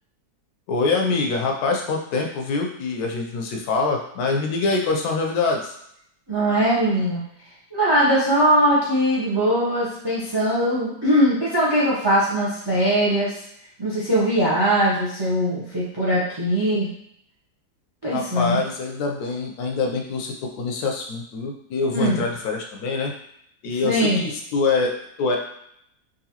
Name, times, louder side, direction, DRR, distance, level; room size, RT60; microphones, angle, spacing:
voice 1, 0.7-5.7 18.1-23.1 23.6-24.9 25.2-25.4, left 4 dB, 75° left, 1 dB, 1.0 m, -24 dB
voice 2, 6.3-7.2 7.7-13.4 13.8-16.9 18.0-18.6 21.9-22.2 23.8-24.3, equal, 40° right, -6 dB, 0.3 m, -21 dB
3.8 x 2.6 x 2.8 m, 0.74 s
omnidirectional pair, 1.8 m